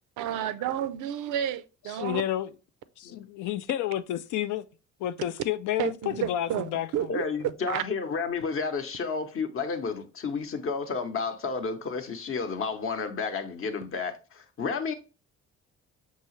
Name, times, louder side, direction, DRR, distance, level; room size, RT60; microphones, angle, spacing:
voice 1, 0.2-2.2 5.8-7.8, right 11 dB, 80° right, 0.5 m, -31 dB
voice 2, 2.0-2.5 3.0-4.6 5.0-7.1, left 12 dB, 80° left, 0.4 m, -30 dB
voice 3, 7.1-14.9, left 5 dB, 45° left, 0.8 m, -31 dB
5.4 x 2.8 x 3.0 m
cardioid pair, 90°, 30 cm